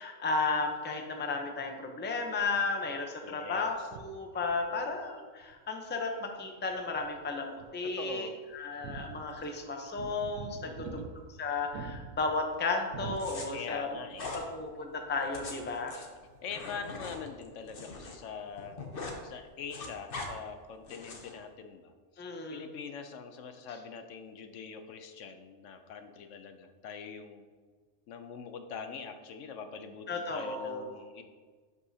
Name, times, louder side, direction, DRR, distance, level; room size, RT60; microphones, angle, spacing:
voice 1, 0.0-11.0 11.3-14.0 14.3-16.0 22.2-22.6 30.1-31.0, left 3 dB, 10° left, 3 dB, 0.5 m, -34 dB
voice 2, 3.2-3.9 4.5-5.0 8.0-8.3 10.6-11.1 13.5-14.4 16.4-18.8 19.2-22.2 22.5-27.5 28.1-31.2, left 6 dB, 75° left, 7 dB, 1.0 m, -43 dB
sound 1, 3.7-5.8 6.4-7.3 7.6-7.7 8.0-8.1 8.5-13.8 14.1-14.3 15.8-15.9, right 5 dB, 90° right, 1.1 m, -45 dB
sound 2, 13.2-13.5 14.1-14.4 15.2-18.1 18.4-19.2 19.5-20.3 20.9-21.3, left 3 dB, 50° left, 1.1 m, -42 dB
11.0 x 5.4 x 2.8 m, 1.4 s
omnidirectional pair, 1.3 m